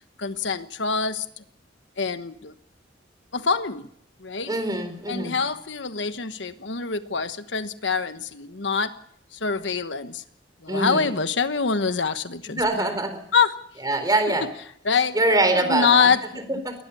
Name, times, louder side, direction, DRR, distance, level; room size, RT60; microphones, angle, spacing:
voice 1, 0.2-1.2 2.0-2.5 3.3-3.9 4.2-4.5 5.1-9.0 9.4-10.2 10.6-12.9 13.3-13.6 14.3-14.4 14.8-15.2 15.6-16.6, left 5 dB, 85° left, 11 dB, 1.2 m, -25 dB
voice 2, 4.5-5.4 10.7-11.2 12.6-13.2 13.8-14.5 15.1-16.1 16.6-16.7, right 2 dB, 20° right, 8 dB, 4.1 m, -23 dB
21.5 x 19.5 x 7.0 m, 0.69 s
head